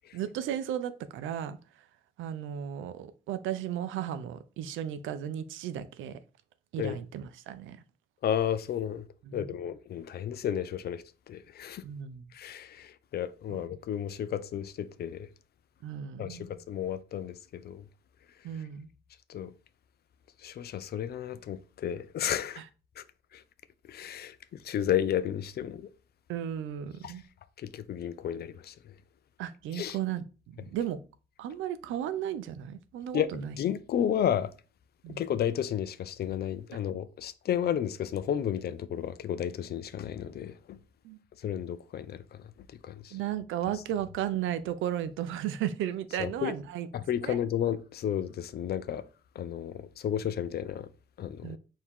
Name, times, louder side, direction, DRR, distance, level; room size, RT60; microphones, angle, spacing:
voice 1, 0.1-1.6 2.2-6.2 6.7-7.8 9.2-9.5 11.8-12.2 15.8-16.5 18.4-18.9 22.6-22.7 26.3-27.2 29.4-31.0 31.4-33.5 35.0-35.2 41.0-41.2 43.1-46.9 47.2-47.4 51.4-51.6, right 10 dB, 80° right, 0.5 m, -34 dB
voice 2, 8.2-9.0 9.3-11.8 12.3-15.3 16.2-17.8 19.3-19.5 20.4-22.6 23.0-23.1 23.3-23.4 23.9-24.3 24.6-25.9 27.0-27.1 27.6-28.7 29.7-30.0 33.1-34.5 35.2-40.8 41.4-42.2 42.8-43.1 46.2-46.5 46.9-49.0 49.4-50.9 51.2-51.6, left 9 dB, 55° left, 0.4 m, -32 dB
4.5 x 2.7 x 3.6 m
cardioid pair, 90°, 20 cm